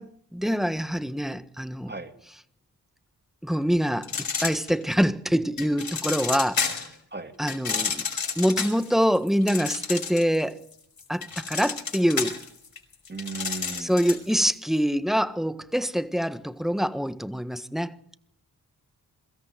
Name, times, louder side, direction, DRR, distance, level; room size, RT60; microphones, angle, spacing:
voice 1, 0.0-1.9 3.4-6.8 7.4-8.1 8.4-10.6 11.1-12.4 13.8-17.9, equal, ahead, 1.4 m, -25 dB
sound 1, 4.0-5.1 5.6-6.9 7.5-10.4 10.7-14.3, left 6 dB, 65° left, 5.4 m, -30 dB
voice 2, 13.1-14.1, right 3 dB, 25° right, 2.8 m, -36 dB
23.5 x 14.0 x 9.1 m
cardioid pair, 45°, 38 cm